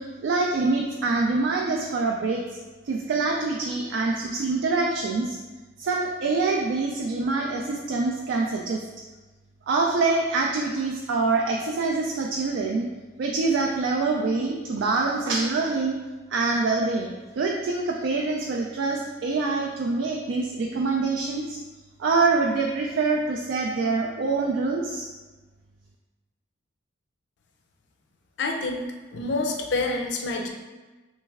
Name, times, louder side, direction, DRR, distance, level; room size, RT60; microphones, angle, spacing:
voice 1, 0.0-2.4 2.9-5.4 5.8-8.8 9.7-12.9 13.2-16.0 16.3-21.6 22.0-25.1, right 3 dB, 65° right, 0 dB, 0.3 m, -25 dB
voice 2, 28.4-28.8 29.1-30.5, left 3 dB, 60° left, 2 dB, 0.5 m, -27 dB
3.2 x 3.1 x 3.4 m, 1.2 s
head